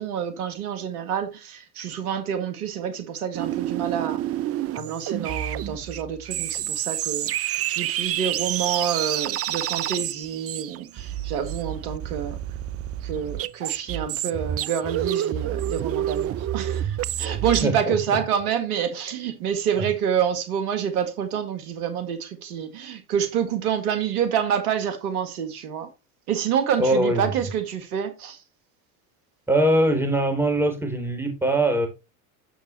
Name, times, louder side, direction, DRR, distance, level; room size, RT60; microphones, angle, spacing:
voice 1, 0.0-4.2 4.7-12.4 13.0-25.9 26.3-28.4, right 8 dB, 80° right, 1.8 m, -27 dB
sound 1, 3.3-17.6, right 12 dB, 35° right, 0.5 m, -29 dB
voice 2, 17.6-18.0 26.8-27.3 29.5-31.9, right 1 dB, 5° right, 3.8 m, -22 dB
8.9 x 6.4 x 3.1 m
hypercardioid pair, 85°, 45 cm